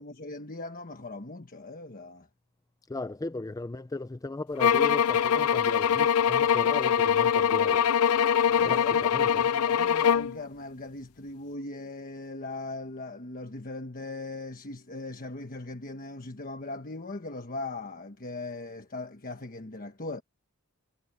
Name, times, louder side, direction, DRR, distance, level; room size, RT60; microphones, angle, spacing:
voice 1, 0.0-2.3 8.6-20.2, left 2 dB, 40° left, 1.3 m, -39 dB
voice 2, 2.9-7.9 8.6-9.4, left 2 dB, 15° left, 0.4 m, -36 dB
sound 1, 4.6-10.4, left 8 dB, 75° left, 0.5 m, -23 dB
head